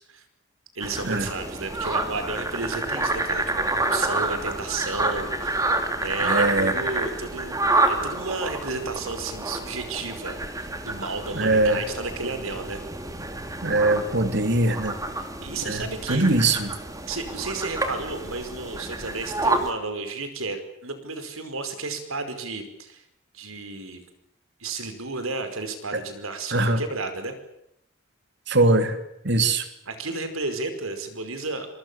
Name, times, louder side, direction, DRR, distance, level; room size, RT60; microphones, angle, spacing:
sound 1, 0.8-19.7, right 2 dB, 15° right, 2.8 m, -29 dB
voice 1, 0.8-7.6 7.9-12.8 15.4-16.4 17.1-23.0 23.3-24.0 24.6-27.3 29.9-31.7, right 3 dB, 80° right, 8 dB, 5.1 m, -32 dB
voice 2, 6.2-6.8 11.3-11.8 13.6-15.0 15.6-16.7 25.9-26.0 26.5-26.8 28.5-29.0 29.2-29.7, right 2 dB, 55° right, 9 dB, 3.0 m, -22 dB
26.0 x 24.5 x 7.1 m, 0.78 s
head